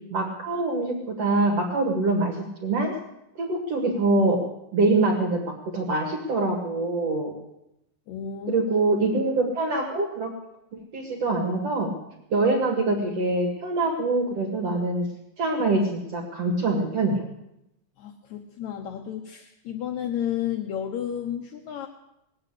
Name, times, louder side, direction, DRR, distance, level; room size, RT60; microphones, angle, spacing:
voice 1, 0.1-2.4 2.6-2.9 3.4-4.4 4.7-7.3 8.5-10.3 10.9-11.9 12.3-15.1 15.4-17.2, right 2 dB, 45° right, 1 dB, 2.6 m, -24 dB
voice 2, 8.1-8.8 18.0-21.9, left 9 dB, 75° left, 4 dB, 1.7 m, -32 dB
19.5 x 8.8 x 8.4 m, 0.85 s
omnidirectional pair, 4.4 m